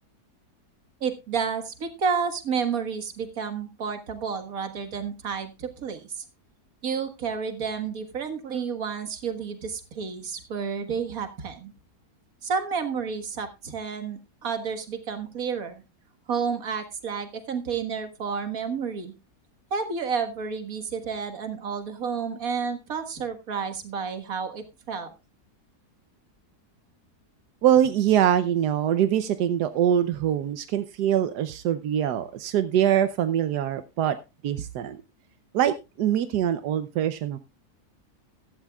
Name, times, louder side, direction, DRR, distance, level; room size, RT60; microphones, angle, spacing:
voice 1, 1.0-6.2 6.8-11.7 12.4-15.8 16.3-19.1 19.7-25.1, right 6 dB, 60° right, 7 dB, 2.0 m, -30 dB
voice 2, 27.6-34.2 34.4-35.0 35.5-37.4, right 10 dB, 90° right, 11 dB, 1.3 m, -23 dB
15.0 x 12.5 x 2.3 m, 0.26 s
omnidirectional pair, 1.7 m